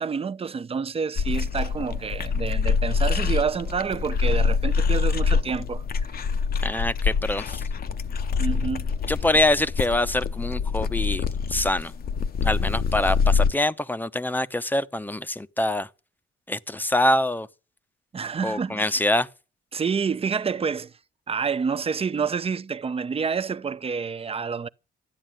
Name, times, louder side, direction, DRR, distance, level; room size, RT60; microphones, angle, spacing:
voice 1, 0.0-6.1 8.4-8.9 18.1-18.9 19.7-20.9 21.3-24.7, right 6 dB, 30° right, 0.7 m, -28 dB
sound 1, 1.2-13.5, left 5 dB, 50° left, 0.8 m, -25 dB
voice 2, 6.6-7.6 9.1-11.9 12.4-15.9 16.5-17.5 18.4-19.3, left 1 dB, 10° left, 0.7 m, -25 dB
12.5 x 10.0 x 9.0 m
cardioid pair, 90°, 20 cm